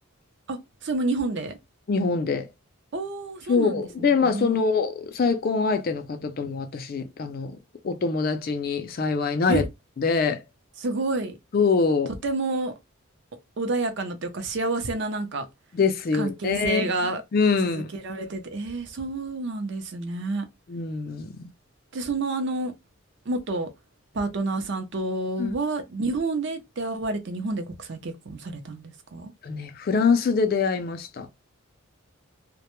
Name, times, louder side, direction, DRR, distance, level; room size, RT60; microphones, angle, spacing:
voice 1, 0.5-1.6 2.9-4.8 9.5-9.6 10.8-11.4 12.2-12.7 13.6-15.5 16.1-17.2 17.6-20.5 21.9-22.7 23.3-23.7 24.1-29.3, right 2 dB, 55° right, 0.5 m, -29 dB
voice 2, 1.9-2.5 3.5-7.6 7.8-9.6 10.0-10.4 11.5-12.1 15.7-16.9 17.3-17.9 20.7-21.5 25.4-25.5 29.4-31.3, left 4 dB, 45° left, 0.3 m, -24 dB
2.1 x 2.0 x 2.9 m
head